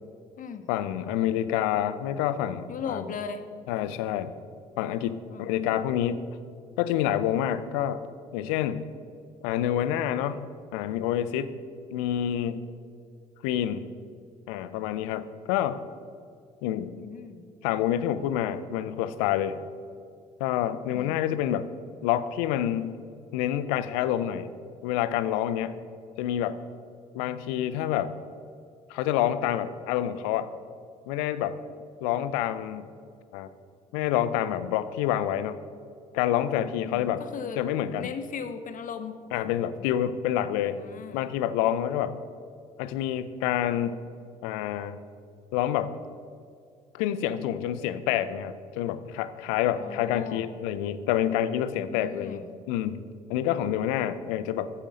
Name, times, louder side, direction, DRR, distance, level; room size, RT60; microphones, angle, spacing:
voice 1, 0.7-3.1 3.7-4.3 4.8-6.2 6.8-8.0 8.3-8.9 9.4-10.4 10.7-11.5 11.9-12.7 13.4-13.9 14.5-15.8 16.6-16.9 17.6-19.6 20.4-21.7 22.0-23.0 23.3-24.5 24.8-25.8 26.2-26.6 27.1-28.1 28.9-30.5 31.1-31.6 32.0-32.9 33.3-33.5 33.9-35.6 36.1-37.2 37.6-38.1 39.3-40.8 41.1-42.2 42.8-44.0 44.4-45.0 45.5-45.9 46.9-53.0 53.3-54.7, left 11 dB, 65° left, 13 dB, 0.5 m, -27 dB
voice 2, 2.7-3.4 5.3-5.7 16.9-17.4 20.9-21.2 36.9-37.6 38.0-39.2 40.7-41.3 49.7-50.5 51.9-52.4, left 6 dB, 45° left, 8 dB, 0.9 m, -37 dB
9.9 x 7.1 x 5.0 m, 2.4 s
figure-of-eight pair, 50°, 20 cm